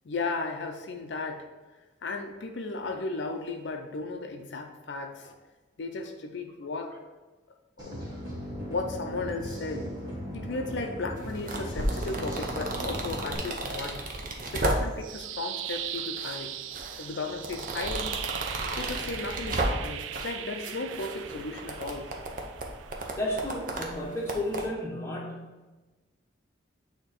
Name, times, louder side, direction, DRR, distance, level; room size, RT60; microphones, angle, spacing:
voice 1, 0.1-1.5 2.0-5.3 5.8-7.0 7.8-8.0 8.7-9.9 10.3-14.0 14.5-16.5 17.0-18.2 18.8-22.2, left 3 dB, 65° left, 4 dB, 0.5 m, -35 dB
sound 1, 7.8-13.4, equal, 20° right, 1.3 m, -38 dB
sound 2, 11.2-15.2 15.7-16.4 16.7-20.3 20.6-24.6, right 2 dB, 45° right, 0.7 m, -33 dB
sound 3, 14.8-24.8, right 11 dB, 80° right, 0.3 m, -40 dB
voice 2, 23.2-25.4, left 1 dB, 15° left, -2 dB, 1.0 m, -32 dB
8.6 x 2.9 x 4.2 m, 1.2 s
head